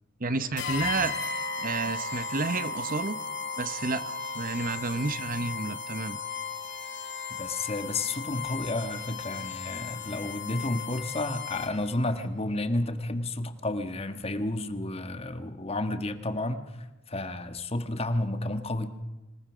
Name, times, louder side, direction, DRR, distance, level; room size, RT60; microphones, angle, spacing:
voice 1, 0.2-1.2 1.6-3.2 3.6-6.2, right 3 dB, 45° right, 13 dB, 1.0 m, -30 dB
sound 1, 0.6-11.9, left 4 dB, 65° left, 3.0 m, -36 dB
voice 2, 7.4-16.6 17.1-18.9, left 2 dB, 30° left, 9 dB, 1.5 m, -31 dB
26.0 x 18.5 x 6.2 m, 1.1 s
head